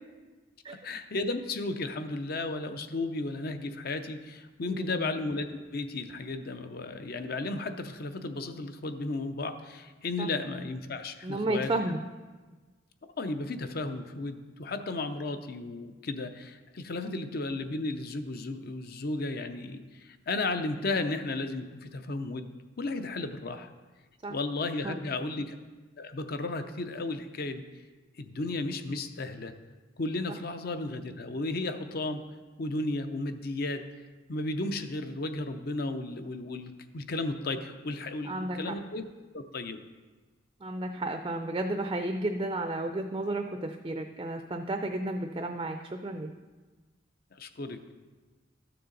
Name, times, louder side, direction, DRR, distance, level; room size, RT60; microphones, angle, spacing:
voice 1, 0.8-11.7 13.2-23.7 24.3-25.6 26.0-27.6 28.2-29.5 30.0-32.2 32.6-33.8 34.3-39.0 39.3-39.8 47.3-47.9, left 2 dB, 50° left, 9 dB, 0.6 m, -34 dB
voice 2, 4.7-5.0 10.2-10.3 11.2-12.0 17.0-17.2 24.2-24.3 24.8-25.0 38.2-38.7 40.6-46.3, right 2 dB, 25° right, 6 dB, 0.4 m, -32 dB
13.0 x 6.8 x 3.9 m, 1.3 s
head